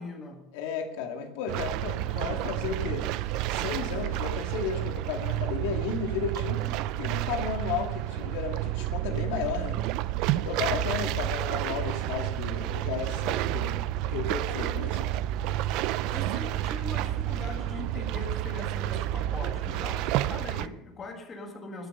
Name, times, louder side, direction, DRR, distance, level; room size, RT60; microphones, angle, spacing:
voice 1, 0.0-0.5 2.3-2.8 3.3-3.4 16.1-21.9, left 3 dB, 20° left, 2 dB, 1.8 m, -41 dB
voice 2, 0.5-3.1 3.5-6.6 7.0-9.8 10.4-13.8 14.1-15.2 16.1-16.2, left 6 dB, 80° left, 4 dB, 2.1 m, -33 dB
sound 1, 1.5-20.7, right 14 dB, 50° right, 0.5 m, -30 dB
20.5 x 7.0 x 5.3 m, 0.96 s
cardioid pair, 175°, 0 cm